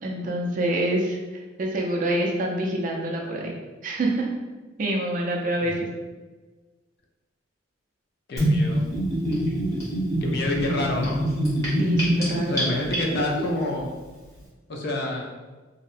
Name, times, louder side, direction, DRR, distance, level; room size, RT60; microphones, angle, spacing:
voice 1, 0.0-3.6 3.8-4.3 4.8-5.9 11.8-12.6, right 1 dB, 40° right, -1 dB, 0.4 m, -26 dB
voice 2, 8.3-8.8 10.2-11.2 12.5-13.9 14.7-15.3, left 1 dB, 50° left, 0 dB, 0.4 m, -28 dB
Gurgling / Bathtub (filling or washing), 8.4-13.4, right 1 dB, 15° left, 0.8 m, -24 dB
2.7 x 2.1 x 2.5 m, 1.3 s
head